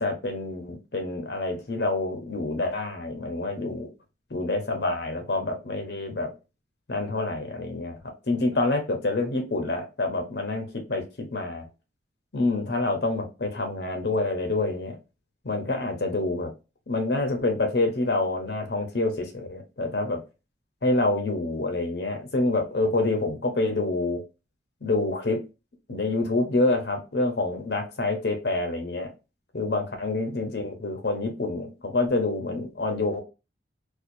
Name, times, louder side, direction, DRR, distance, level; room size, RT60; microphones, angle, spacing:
voice 1, 0.0-3.9 4.3-6.3 6.9-11.6 12.3-15.0 15.4-16.5 16.9-20.2 20.8-24.2 24.8-25.4 25.9-29.1 29.5-33.2, left 2 dB, 60° left, 6 dB, 0.7 m, -27 dB
4.3 x 2.2 x 2.5 m, 0.29 s
head